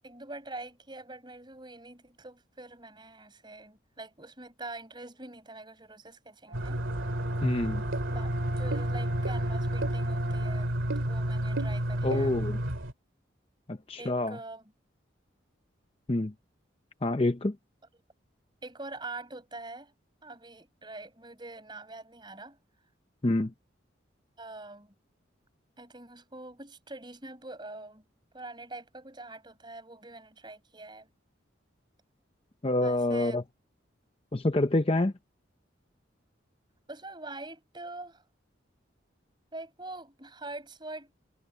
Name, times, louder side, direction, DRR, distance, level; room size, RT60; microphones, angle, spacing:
voice 1, 0.0-6.8 8.1-10.7 11.0-12.4 14.0-14.6 18.6-19.9 20.2-22.6 24.4-24.9 25.8-28.0 28.3-31.1 32.8-33.4 36.9-38.2 39.5-41.1, right 2 dB, 25° right, 5.5 m, -44 dB
Brass instrument, 6.5-10.9, right 2 dB, 60° right, 2.6 m, -43 dB
sound 1, 6.5-12.9, right 1 dB, 85° right, 2.3 m, -30 dB
voice 2, 7.4-7.8 12.0-12.6 13.7-14.4 16.1-16.3 17.0-17.6 23.2-23.5 32.6-33.4 34.3-35.1, left 2 dB, 30° left, 0.7 m, -27 dB
head